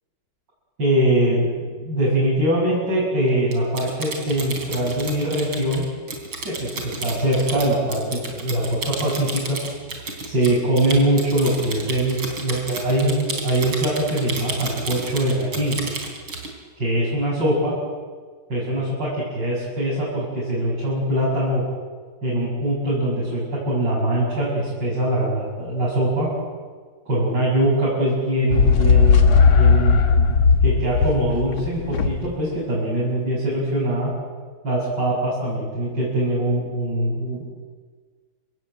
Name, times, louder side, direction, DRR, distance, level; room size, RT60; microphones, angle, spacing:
voice 1, 0.8-5.8 6.4-9.6 10.2-15.8 16.8-17.7 18.5-21.6 22.2-26.3 27.1-30.0 30.6-34.1 34.6-37.5, right 1 dB, 60° right, -7 dB, 7.8 m, -22 dB
Typing, 3.5-16.5, right 3 dB, 80° right, 4.6 m, -32 dB
sound 1, 28.5-32.3, left 5 dB, 80° left, 2.5 m, -16 dB
29.5 x 16.5 x 9.0 m, 1.5 s
omnidirectional pair, 2.2 m